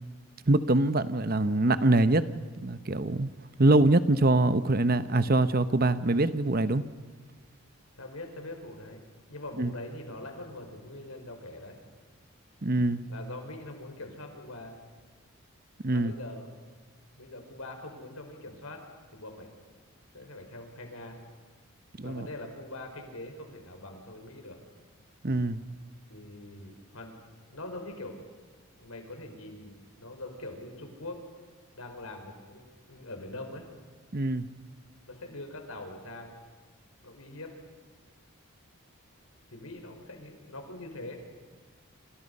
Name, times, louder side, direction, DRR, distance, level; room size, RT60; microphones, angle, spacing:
voice 1, 0.5-3.3 3.6-6.8 9.6-9.7 12.6-13.0 15.8-16.1 22.0-22.3 25.2-25.6 34.1-34.5, right 2 dB, 45° right, 0.9 m, -24 dB
voice 2, 8.0-9.0 9.3-11.8 13.1-14.7 15.9-16.5 17.2-18.8 19.1-19.5 20.1-21.2 22.0-24.6 26.1-27.2 27.5-28.2 28.8-31.2 31.7-33.7 35.1-36.3 37.0-37.5 39.5-41.2, left 2 dB, 80° left, 5.1 m, -43 dB
28.0 x 27.5 x 5.5 m
head